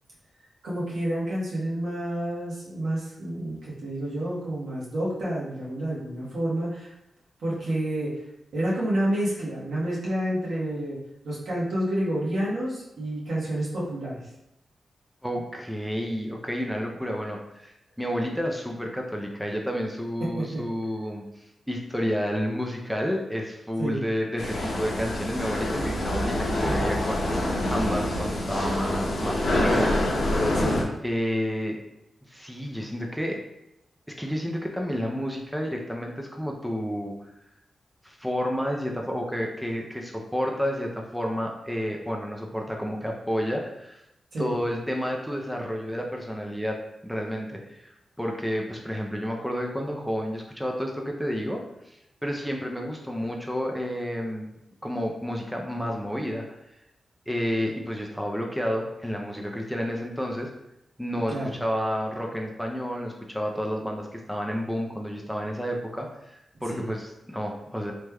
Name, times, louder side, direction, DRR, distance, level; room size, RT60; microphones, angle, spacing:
voice 1, 0.6-6.9 7.4-8.1 8.5-11.0 11.2-14.2 20.4-20.6 23.8-24.0 26.6-26.8 30.5-30.8 44.3-44.5 61.3-61.6 66.7-66.9, right 1 dB, 75° right, -7 dB, 1.2 m, -29 dB
voice 2, 15.2-30.3 31.0-31.8 32.3-33.4 34.1-37.1 38.0-44.0 44.4-46.8 47.0-54.5 54.8-56.6 57.3-60.5 61.0-67.9, equal, ahead, 0 dB, 0.5 m, -30 dB
sound 1, 24.4-30.8, left 1 dB, 85° left, 0.6 m, -26 dB
3.2 x 3.1 x 2.2 m, 0.84 s
cardioid pair, 75°, 0 cm